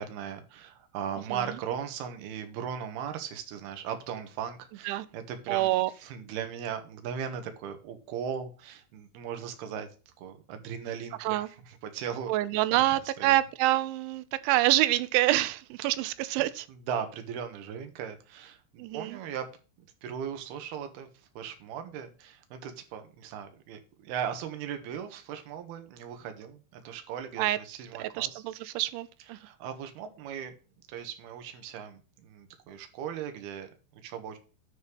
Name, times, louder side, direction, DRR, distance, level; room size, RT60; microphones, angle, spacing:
voice 1, 0.0-5.7 6.0-9.9 10.2-12.3 12.7-13.4 16.9-19.5 19.8-21.1 21.4-28.4 29.3-30.5 30.9-34.4, right 8 dB, 65° right, 3.1 m, -38 dB
voice 2, 5.5-5.9 11.2-11.5 12.3-16.7 18.8-19.2 27.4-27.6 28.0-29.4, right 16 dB, 80° right, 3.1 m, -27 dB
10.0 x 4.4 x 7.0 m
omnidirectional pair, 5.5 m